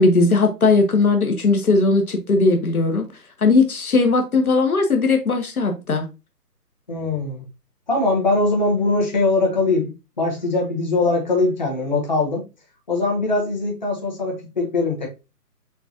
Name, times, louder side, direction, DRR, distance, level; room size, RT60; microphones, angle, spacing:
voice 1, 0.0-3.1 3.4-6.0, left 3 dB, 60° left, 4 dB, 1.0 m, -18 dB
voice 2, 6.9-7.4 7.9-12.4 12.9-15.1, left 3 dB, 30° left, -2 dB, 1.1 m, -21 dB
6.9 x 2.4 x 2.8 m, 0.27 s
hypercardioid pair, 180°, 49 cm